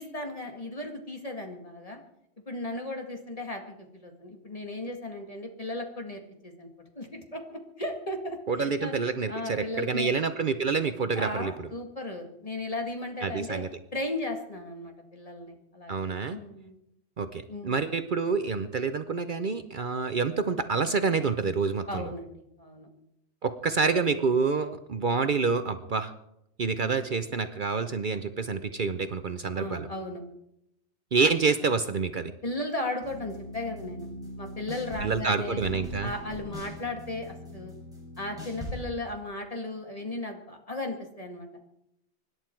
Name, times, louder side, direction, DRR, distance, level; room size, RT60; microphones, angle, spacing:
voice 1, 0.0-2.0 2.5-6.7 7.0-8.9 9.3-10.1 11.2-13.6 13.9-16.7 17.5-17.8 21.9-22.9 29.5-30.2 32.4-34.1 34.4-35.6 36.0-37.7 38.2-41.5, left 2 dB, 35° left, 3 dB, 2.0 m, -36 dB
voice 2, 8.5-11.7 13.2-13.7 15.9-16.4 17.2-22.1 23.4-26.1 26.6-29.9 31.1-32.3 35.0-36.1, right 4 dB, 50° right, 9 dB, 0.8 m, -27 dB
sound 1, 33.0-38.8, left 1 dB, 5° right, 6.9 m, -40 dB
25.0 x 11.0 x 4.6 m, 0.82 s
omnidirectional pair, 1.1 m